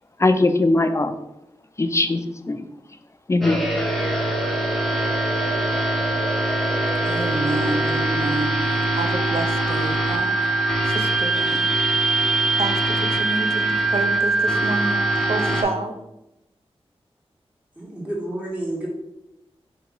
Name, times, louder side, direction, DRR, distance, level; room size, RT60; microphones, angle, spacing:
voice 1, 0.2-1.1 1.8-2.6 3.3-3.6, left 2 dB, 25° left, 8 dB, 0.4 m, -20 dB
sound 1, 3.4-15.6, right 2 dB, 5° left, 0.8 m, -22 dB
voice 2, 7.0-8.6 9.0-10.3 10.9-11.7 12.6-15.0 15.3-15.9, right 2 dB, 65° right, 6 dB, 0.5 m, -29 dB
voice 3, 17.7-18.9, right 1 dB, 15° right, -4 dB, 1.5 m, -30 dB
3.6 x 2.9 x 3.8 m, 0.90 s
cardioid pair, 50°, 11 cm